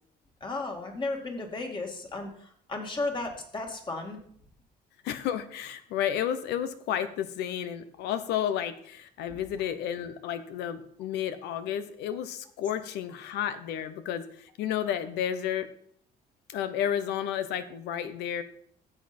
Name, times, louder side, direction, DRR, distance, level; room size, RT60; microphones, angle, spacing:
voice 1, 0.4-4.2 9.3-9.4, left 2 dB, 30° left, 2 dB, 2.3 m, -34 dB
voice 2, 5.0-15.7 16.5-18.4, left 9 dB, 85° left, 11 dB, 1.0 m, -32 dB
12.5 x 7.5 x 4.4 m, 0.63 s
cardioid pair, 110°, 17 cm